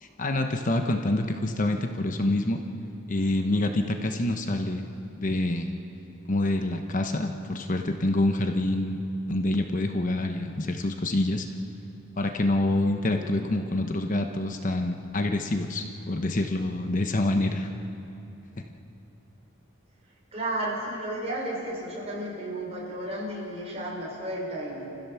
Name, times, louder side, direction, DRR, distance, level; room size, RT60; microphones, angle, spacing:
voice 1, 0.0-2.6 3.1-4.9 5.1-5.7 6.3-11.5 12.2-17.7, left 1 dB, 40° left, 5 dB, 1.0 m, -26 dB
voice 2, 13.2-13.5 20.3-24.9, right 1 dB, 30° right, -4 dB, 5.9 m, -33 dB
29.5 x 15.0 x 7.0 m, 2.9 s
head